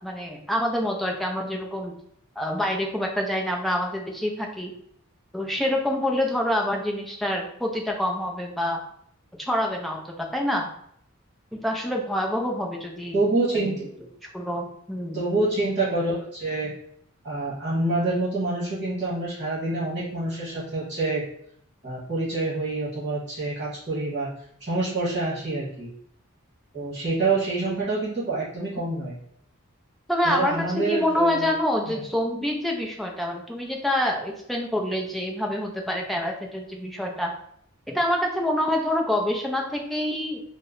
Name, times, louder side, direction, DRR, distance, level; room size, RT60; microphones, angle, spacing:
voice 1, 0.0-1.9 2.4-4.7 5.3-8.8 9.3-10.7 11.5-13.2 13.5-13.7 14.3-15.3 30.1-37.3 37.9-40.4, left 1 dB, ahead, 0 dB, 0.4 m, -26 dB
voice 2, 13.1-13.9 15.1-16.7 17.2-21.2 21.8-24.3 24.6-25.9 26.7-29.2 30.2-31.5 31.9-32.0, right 2 dB, 30° right, -9 dB, 1.4 m, -27 dB
3.0 x 2.1 x 3.7 m, 0.68 s
head